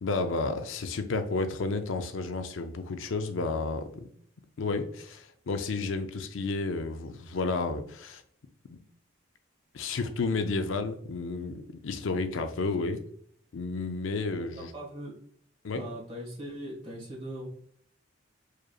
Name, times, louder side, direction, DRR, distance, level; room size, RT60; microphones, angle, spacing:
voice 1, 0.0-4.1 4.6-8.2 9.7-13.0 13.5-14.7 15.6-15.8, left 3 dB, 75° left, 8 dB, 0.5 m, -31 dB
voice 2, 14.4-15.2 15.7-17.5, right 1 dB, 30° right, -3 dB, 1.6 m, -40 dB
4.7 x 3.1 x 2.3 m, 0.63 s
head